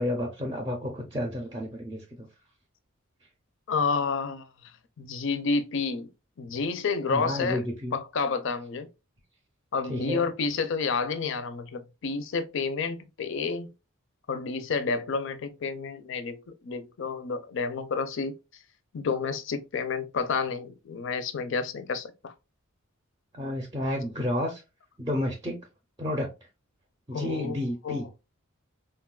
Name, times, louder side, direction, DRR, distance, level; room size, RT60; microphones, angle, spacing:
voice 1, 0.0-2.3 7.1-8.0 9.9-10.3 23.3-24.6 25.0-25.6 26.0-26.3 27.1-28.1, left 1 dB, 20° right, 0.5 m, -31 dB
voice 2, 3.7-4.5 5.0-6.1 6.4-7.6 7.9-8.9 9.7-13.7 14.3-16.4 16.6-18.3 18.9-22.3 27.1-27.6 27.8-28.1, left 4 dB, 60° left, 0.5 m, -30 dB
4.0 x 2.2 x 2.2 m
head